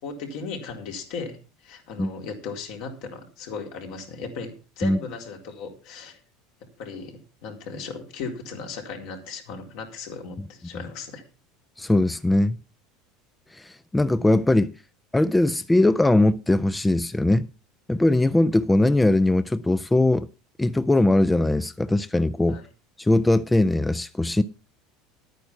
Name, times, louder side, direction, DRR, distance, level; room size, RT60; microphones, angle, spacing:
voice 1, 0.0-6.2 6.8-11.2 22.5-22.6, left 4 dB, 70° left, 4.0 m, -36 dB
voice 2, 11.8-12.6 13.5-14.7 15.1-17.5 17.9-20.3 20.6-22.6 23.0-24.4, left 2 dB, 10° left, 0.5 m, -20 dB
11.0 x 9.2 x 5.6 m
supercardioid pair, 105°, 0 cm